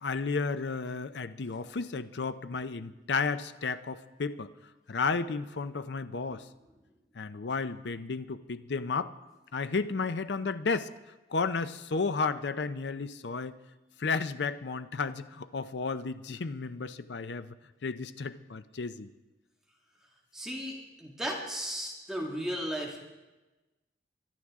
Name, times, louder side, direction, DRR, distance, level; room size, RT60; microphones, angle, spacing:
voice 1, 0.0-4.5 4.9-6.5 7.2-9.1 9.5-10.9 11.3-13.6 14.0-17.5 17.8-19.1, left 4 dB, 65° left, 11 dB, 0.6 m, -33 dB
voice 2, 20.3-23.0, equal, 5° right, -2 dB, 1.8 m, -35 dB
23.5 x 11.5 x 3.6 m, 1.1 s
head